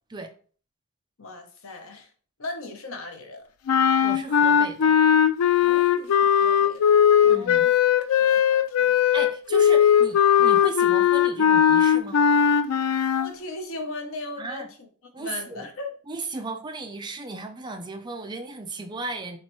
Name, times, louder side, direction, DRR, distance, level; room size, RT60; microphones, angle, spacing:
voice 1, 1.2-2.1 2.4-3.4 5.6-7.0 7.2-7.7 8.2-8.9 13.1-14.7 15.2-15.9, left 2 dB, 65° left, 0.8 m, -38 dB
sound 1, 3.7-13.3, left 8 dB, 85° left, 0.3 m, -19 dB
voice 2, 4.0-4.9 7.3-7.7 9.0-12.2 14.4-14.7 15.1-15.6 16.1-19.4, right 3 dB, 20° right, 0.4 m, -36 dB
4.4 x 3.1 x 3.0 m
head